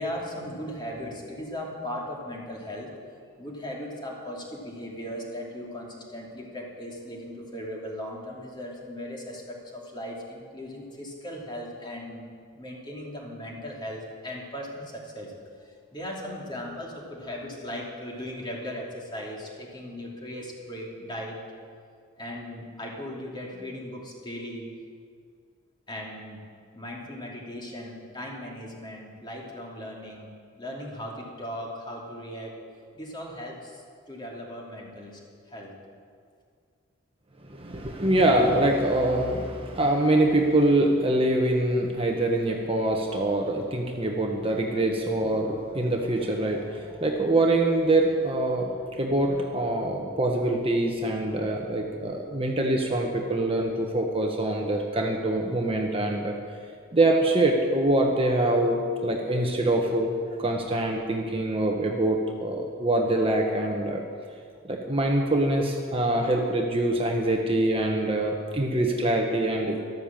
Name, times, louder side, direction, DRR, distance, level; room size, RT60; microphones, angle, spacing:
voice 1, 0.0-12.3 12.5-15.3 15.6-21.4 22.2-24.7 25.9-26.4 26.7-32.5 32.9-35.2 35.5-35.7, left 1 dB, 25° left, -2 dB, 2.9 m, -38 dB
voice 2, 37.4-56.3 56.9-64.0 64.7-69.8, right 1 dB, 30° right, 1 dB, 1.2 m, -24 dB
13.5 x 12.5 x 7.4 m, 2.2 s
head